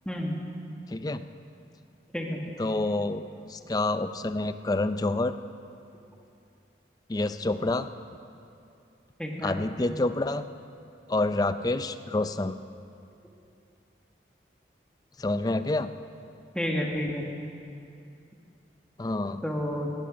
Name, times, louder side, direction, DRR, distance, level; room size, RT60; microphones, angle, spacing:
voice 1, 0.1-0.4 2.1-2.4 9.2-9.6 16.5-17.2 19.4-19.9, equal, 5° left, -1 dB, 1.6 m, -30 dB
voice 2, 0.9-1.2 2.6-3.2 3.5-5.4 7.1-7.9 9.4-10.5 11.1-12.5 15.2-15.9 19.0-19.4, left 2 dB, 20° left, 11 dB, 0.4 m, -28 dB
16.5 x 16.0 x 5.2 m, 2.6 s
head